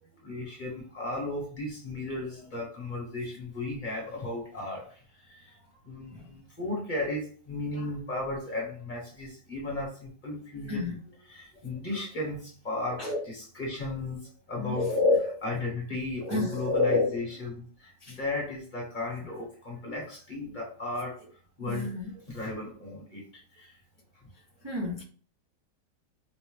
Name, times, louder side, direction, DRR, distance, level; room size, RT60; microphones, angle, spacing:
voice 1, 0.2-5.6 5.9-14.2 14.5-14.9 15.4-21.2 21.6-23.2 23.6-23.7, left 2 dB, 35° left, 0.9 m, -35 dB
voice 2, 10.7-11.0 13.0-13.2 14.6-15.4 16.2-17.2 18.0-18.1 21.7-22.1 24.6-25.0, left 3 dB, 45° right, 0.3 m, -28 dB
4.3 x 2.0 x 3.1 m
omnidirectional pair, 1.8 m